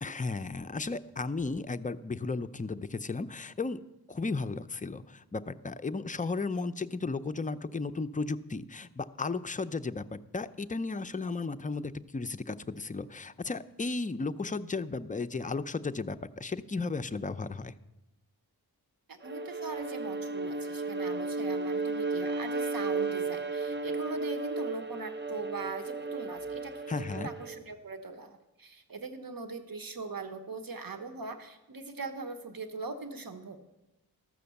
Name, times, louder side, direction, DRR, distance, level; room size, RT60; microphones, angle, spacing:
voice 1, 0.0-3.8 4.1-17.7 26.9-27.3, left 3 dB, 20° left, 10 dB, 0.5 m, -34 dB
voice 2, 19.1-33.6, right 3 dB, 65° right, 8 dB, 1.0 m, -41 dB
Bowed string instrument, 19.2-27.6, right 3 dB, 30° right, 0.6 m, -34 dB
13.5 x 6.2 x 6.9 m, 0.96 s
wide cardioid pair, 55°, 38 cm